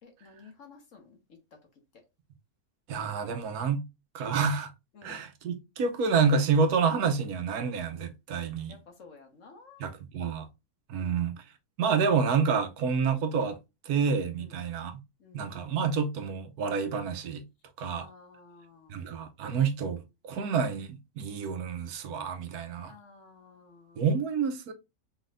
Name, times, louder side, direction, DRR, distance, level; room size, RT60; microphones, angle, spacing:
voice 1, 0.0-1.4 1.9-2.0 4.9-5.2 8.7-9.9 10.9-11.2 14.4-14.7 15.2-15.9 17.9-19.0 22.8-24.1, left 4 dB, 55° left, 1.5 m, -53 dB
voice 2, 2.9-3.8 4.1-4.7 5.0-8.8 9.8-10.5 10.9-11.4 11.8-13.6 13.8-15.0 15.3-17.4 17.8-18.1 18.9-22.9 24.0-24.7, right 5 dB, 75° right, 1.2 m, -28 dB
4.4 x 3.9 x 2.5 m
omnidirectional pair, 1.6 m